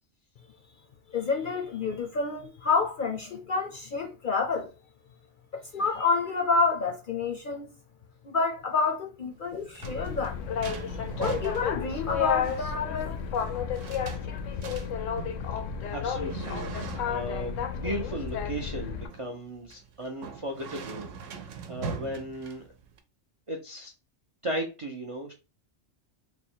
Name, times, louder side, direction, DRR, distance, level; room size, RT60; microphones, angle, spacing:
voice 1, 1.1-4.7 5.5-7.7 8.2-10.5 10.9-13.1, left 4 dB, 55° left, 0.6 m, -28 dB
sound 1, 9.3-23.0, right 5 dB, 85° right, 1.0 m, -42 dB
Boat Water vehicle, 9.8-19.1, left 7 dB, 85° left, 0.9 m, -32 dB
voice 2, 15.9-16.6 17.0-22.6 23.5-23.9 24.4-25.3, right 1 dB, 45° right, 0.4 m, -36 dB
3.4 x 2.2 x 4.3 m
omnidirectional pair, 1.3 m